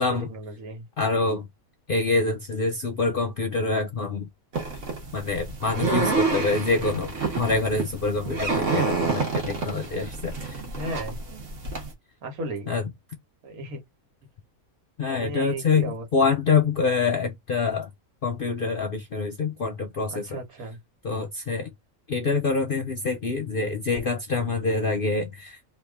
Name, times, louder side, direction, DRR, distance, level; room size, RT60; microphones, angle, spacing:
voice 1, 0.1-0.9 10.6-11.2 12.2-12.7 13.4-13.8 15.1-16.3 20.1-20.8, right 2 dB, 90° right, 1.7 m, -35 dB
voice 2, 1.0-1.5 1.9-4.3 5.1-10.6 12.7-12.8 15.0-17.9 18.2-20.4 21.0-21.7 22.1-25.6, left 4 dB, 55° left, 0.6 m, -26 dB
sound 1, 4.5-11.9, right 4 dB, 65° right, 1.4 m, -28 dB
2.9 x 2.4 x 3.4 m
omnidirectional pair, 1.5 m